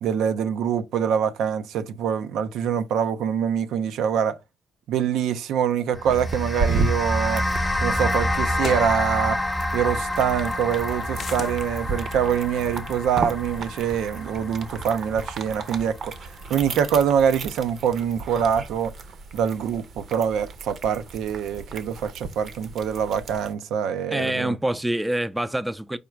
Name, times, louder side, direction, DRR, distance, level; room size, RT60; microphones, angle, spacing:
voice 1, 0.0-4.4 4.9-7.4 7.8-9.4 9.7-18.9 19.3-24.6, right 8 dB, 85° right, 0.5 m, -24 dB
sound 1, 5.9-16.5, left 1 dB, 10° left, 0.8 m, -28 dB
sound 2, 6.1-23.5, right 4 dB, 60° right, 0.8 m, -35 dB
sound 3, 8.6-8.9 11.1-11.6, left 6 dB, 50° left, 0.4 m, -34 dB
voice 2, 24.1-26.0, right 1 dB, 10° right, 0.4 m, -26 dB
5.0 x 2.3 x 4.4 m
cardioid pair, 90°, 0 cm